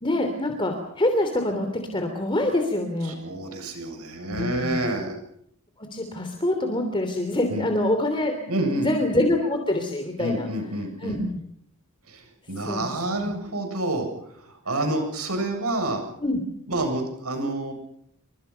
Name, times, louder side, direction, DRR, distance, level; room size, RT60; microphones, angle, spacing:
voice 1, 0.0-3.2 4.3-4.9 5.8-8.3 8.7-10.5 11.0-11.3 12.6-13.3 16.2-16.4, left 1 dB, 20° left, 5 dB, 3.3 m, -25 dB
voice 2, 3.0-5.2 7.5-7.7 8.5-8.9 10.2-11.2 12.1-14.1 14.3-16.0 16.7-17.7, right 1 dB, 85° right, 5 dB, 7.9 m, -28 dB
28.5 x 26.0 x 5.8 m, 0.70 s
head